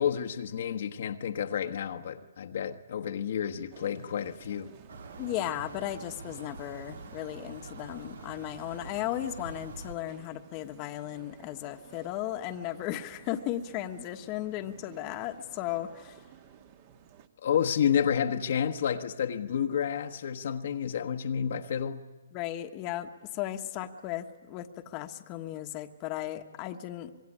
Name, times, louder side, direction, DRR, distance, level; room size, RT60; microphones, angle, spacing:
voice 1, 0.0-4.7 17.4-22.0, left 8 dB, 60° left, 1.2 m, -30 dB
sound 1, 3.7-17.3, right 8 dB, 40° right, 1.8 m, -55 dB
sound 2, 4.9-9.9, right 4 dB, 75° right, 1.8 m, -45 dB
voice 2, 5.2-16.3 22.3-27.1, left 13 dB, 30° left, 1.3 m, -36 dB
25.5 x 22.0 x 10.0 m
hypercardioid pair, 145°, 0 cm